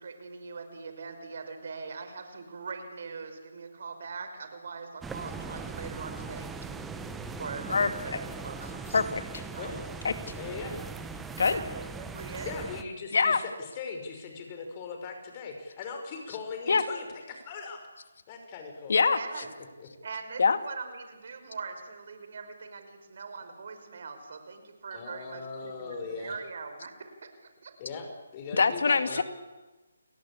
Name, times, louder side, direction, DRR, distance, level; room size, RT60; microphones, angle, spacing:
voice 1, 0.0-6.5 7.4-8.8 9.5-9.7 11.4-12.5 18.9-19.5 20.0-27.3 27.6-27.7 29.1-29.2, right 4 dB, 55° right, 7 dB, 5.7 m, -41 dB
sound 1, 5.0-12.8, right 4 dB, 5° right, 1.3 m, -40 dB
voice 2, 7.7-8.2 8.9-9.4 10.0-10.1 11.4-11.6 13.1-13.4 16.7-16.8 18.9-19.2 20.4-20.6 28.5-29.2, left 5 dB, 65° left, 10 dB, 2.3 m, -24 dB
voice 3, 10.4-10.8 12.5-17.9 18.3-19.0 19.6-19.9 24.9-26.4 27.8-29.2, left 4 dB, 30° left, 4 dB, 5.6 m, -39 dB
29.5 x 19.0 x 8.7 m, 1.2 s
hypercardioid pair, 155°, 0 cm